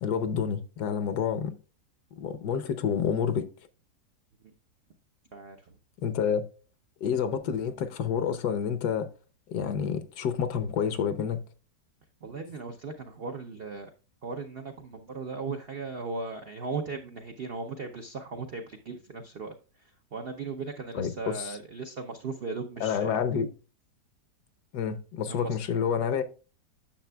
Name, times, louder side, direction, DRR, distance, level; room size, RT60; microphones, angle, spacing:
voice 1, 0.0-1.5 2.2-3.5 6.0-6.4 7.0-9.1 9.5-11.4 20.9-21.6 22.8-23.5 24.7-26.2, left 7 dB, 75° left, 1.3 m, -28 dB
voice 2, 12.2-13.9 14.2-23.1 25.3-25.6, right 4 dB, 65° right, 0.6 m, -37 dB
10.0 x 6.6 x 2.2 m
omnidirectional pair, 1.8 m